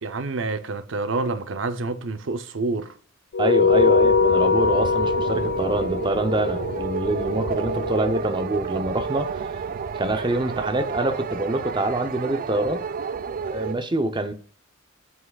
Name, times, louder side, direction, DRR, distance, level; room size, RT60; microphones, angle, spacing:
voice 1, 0.0-2.9, right 3 dB, 75° right, 0.7 m, -28 dB
sound 1, 3.3-8.1, left 5 dB, 75° left, 0.4 m, -22 dB
voice 2, 3.4-9.4 9.9-12.8 13.4-14.3, right 1 dB, 25° right, 0.7 m, -25 dB
sound 2, 3.7-13.8, right 6 dB, 45° right, 0.3 m, -31 dB
7.9 x 5.9 x 2.4 m
head